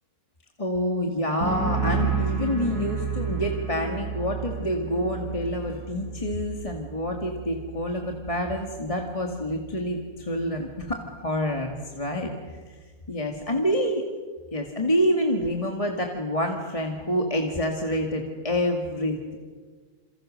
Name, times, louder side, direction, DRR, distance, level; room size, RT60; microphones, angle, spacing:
voice 1, 0.6-12.3 13.1-14.0 14.5-19.4, equal, 20° left, 2 dB, 2.1 m, -27 dB
sound 1, 1.4-8.9 9.2-9.7, right 6 dB, 90° right, 7.9 m, -31 dB
28.5 x 28.0 x 6.6 m, 1.5 s
omnidirectional pair, 1.6 m